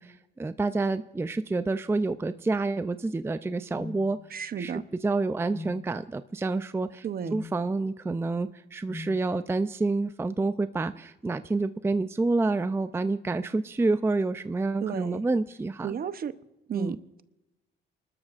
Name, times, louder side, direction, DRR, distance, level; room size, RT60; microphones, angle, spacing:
voice 1, 0.0-4.2 4.6-7.1 7.3-15.9 16.7-17.0, right 3 dB, 10° right, 12 dB, 0.4 m, -28 dB
sound 1, 3.7-4.0 5.5-5.8 7.2-7.5 8.9-9.2, left 3 dB, 55° left, 5.8 m, -39 dB
voice 2, 4.3-4.8 7.0-7.4 14.8-15.2 15.8-16.3 16.7-17.2, right 8 dB, 50° right, 12 dB, 0.8 m, -33 dB
29.5 x 12.5 x 2.5 m, 0.96 s
cardioid pair, 90°, 20 cm